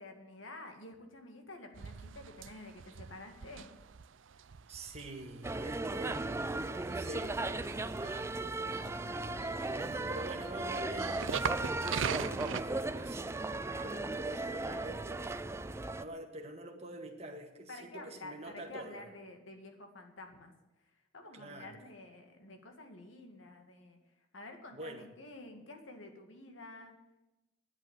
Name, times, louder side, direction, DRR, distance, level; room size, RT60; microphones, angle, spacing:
voice 1, 0.0-3.7 17.7-20.5 21.1-24.0 24.3-27.0, left 2 dB, 90° left, 4 dB, 2.1 m, -50 dB
sound 1, 1.7-12.6, right 7 dB, 80° right, 0.5 m, -42 dB
voice 2, 4.7-19.1 21.3-21.8 24.7-25.1, right 2 dB, 35° right, 2 dB, 1.8 m, -47 dB
sound 2, 5.4-16.0, right 2 dB, 15° right, 0.4 m, -36 dB
10.5 x 8.5 x 9.1 m, 1.0 s
head